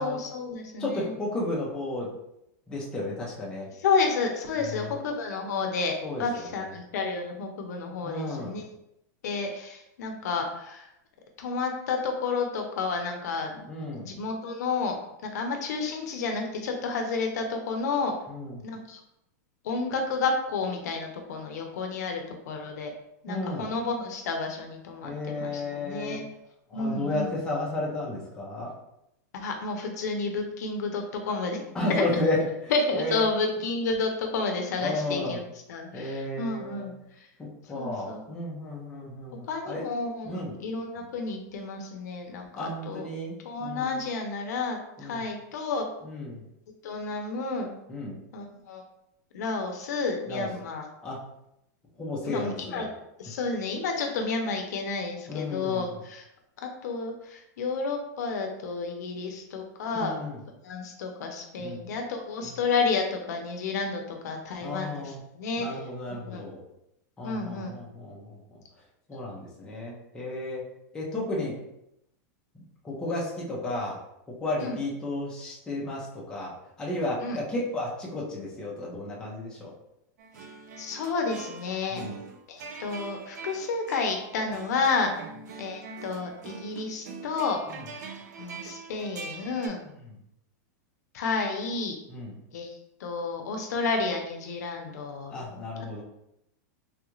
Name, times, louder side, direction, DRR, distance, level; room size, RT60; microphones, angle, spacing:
voice 1, 0.0-1.1 3.8-8.6 9.2-10.9 11.4-13.6 14.0-15.0 15.2-18.1 18.6-19.0 19.6-22.9 23.2-26.2 26.7-27.3 29.3-31.6 31.9-32.0 32.7-35.4 35.7-36.9 37.7-38.3 39.5-43.1 43.4-45.9 46.8-47.7 48.3-48.8 49.3-50.9 52.2-52.9 53.2-56.2 56.6-60.2 60.6-65.8 66.1-66.5 67.2-67.8 74.6-74.8 77.2-77.4 80.8-82.0 82.5-85.1 85.6-87.6 88.4-89.8 91.1-91.9 92.5-92.7 93.0-95.7, left 4 dB, 70° left, 3 dB, 0.7 m, -31 dB
voice 2, 0.8-2.1 2.7-3.7 4.6-4.9 6.0-6.7 8.0-8.6 13.7-14.1 18.3-18.6 23.3-23.7 25.0-26.2 26.7-28.7 31.7-33.2 34.8-35.4 35.9-36.9 37.4-39.8 40.2-40.6 42.5-44.0 45.0-45.2 46.0-46.4 47.9-48.2 50.3-50.5 51.0-51.2 52.0-52.9 55.3-56.0 59.9-60.4 61.6-61.9 62.4-62.6 64.6-65.2 65.6-66.6 67.2-68.4 69.1-70.7 70.9-71.6 72.8-74.0 74.4-79.7 81.9-82.2 87.7-87.8 90.0-90.2 92.1-92.3 95.3-96.0, left 2 dB, 10° left, -5 dB, 0.6 m, -33 dB
sound 1, 80.2-89.7, right 5 dB, 80° right, 0.5 m, -43 dB
3.4 x 2.4 x 3.0 m, 0.81 s
supercardioid pair, 165°, 9 cm